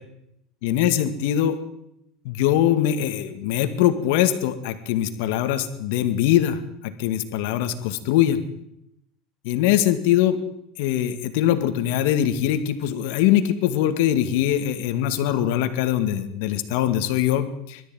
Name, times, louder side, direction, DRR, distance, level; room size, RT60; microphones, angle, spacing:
voice 1, 0.6-1.6 2.2-8.4 9.4-10.4 10.8-17.8, left 11 dB, 70° left, 9 dB, 2.2 m, -22 dB
22.0 x 13.5 x 9.3 m, 0.80 s
supercardioid pair, 145°, 0 cm